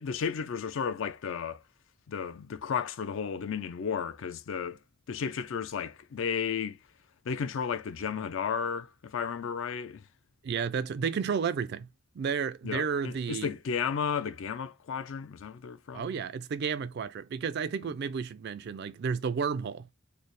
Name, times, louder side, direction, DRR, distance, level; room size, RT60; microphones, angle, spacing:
voice 1, 0.0-1.6 2.1-4.8 5.1-6.8 7.3-10.0 12.6-16.2, left 6 dB, 65° left, 0.4 m, -33 dB
voice 2, 10.4-11.9 12.2-13.5 15.9-19.9, right 6 dB, 50° right, 0.3 m, -32 dB
3.2 x 2.0 x 4.0 m
head